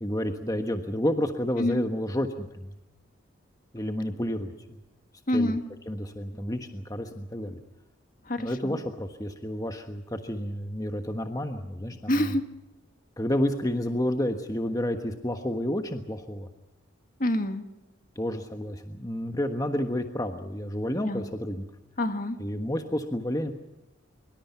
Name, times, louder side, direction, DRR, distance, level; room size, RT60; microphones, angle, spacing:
voice 1, 0.0-2.7 3.7-4.8 5.3-5.5 5.9-7.6 8.4-12.0 13.2-16.5 18.1-21.7 22.4-23.5, left 1 dB, 15° left, 6 dB, 1.3 m, -30 dB
voice 2, 5.3-5.6 8.3-8.8 12.1-12.4 17.2-17.6 21.0-21.2 22.0-22.4, left 1 dB, 40° left, 8 dB, 1.7 m, -27 dB
24.5 x 24.0 x 5.8 m, 0.98 s
head